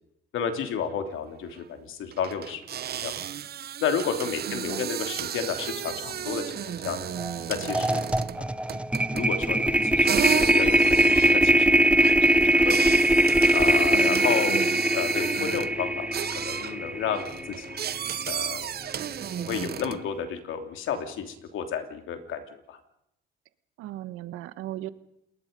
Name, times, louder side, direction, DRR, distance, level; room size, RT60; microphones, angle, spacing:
voice 1, 0.3-3.2 3.8-7.1 7.5-8.0 8.4-8.5 9.1-12.9 13.5-14.6 14.9-17.7 18.3-18.7 19.1-22.8, left 7 dB, 70° left, 6 dB, 3.1 m, -32 dB
sound 1, 1.1-1.2 1.4-1.6 2.1-8.4 8.7-9.4 10.0-15.8 16.1-16.8 17.1-20.1, right 10 dB, 50° right, 0.8 m, -33 dB
voice 2, 4.5-4.9 13.9-14.8 23.8-24.9, right 14 dB, 90° right, 14 dB, 1.2 m, -37 dB
sound 2, 5.4-20.1, left 3 dB, 35° left, 6.7 m, -47 dB
sound 3, 7.2-7.4 7.7-17.9, right 1 dB, 5° right, 0.7 m, -22 dB
29.0 x 20.5 x 5.4 m, 0.80 s
cardioid pair, 95°, 21 cm